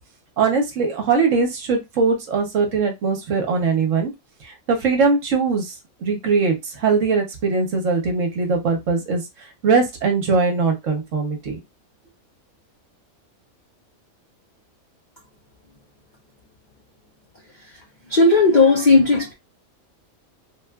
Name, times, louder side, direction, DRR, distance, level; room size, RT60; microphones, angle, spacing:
voice 1, 0.4-4.1 4.4-5.8 6.0-11.6, right 4 dB, 65° right, 1.1 m, -21 dB
voice 2, 18.1-19.3, left 3 dB, 60° left, 0.5 m, -15 dB
3.3 x 2.4 x 2.2 m
omnidirectional pair, 1.5 m